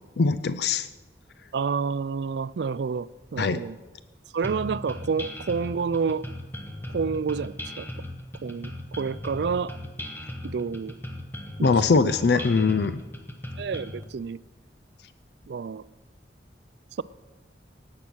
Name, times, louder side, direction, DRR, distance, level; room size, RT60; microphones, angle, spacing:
voice 1, 0.2-0.9 3.4-3.6 11.6-13.0, left 4 dB, 65° left, 0.5 m, -22 dB
voice 2, 1.5-3.8 4.3-6.3 6.9-7.9 8.4-9.8 10.4-10.9 11.6-11.7 13.6-14.4 15.5-15.8, right 5 dB, 65° right, 0.4 m, -29 dB
sound 1, 4.4-14.0, left 1 dB, 10° left, 1.2 m, -37 dB
17.5 x 8.6 x 6.2 m
head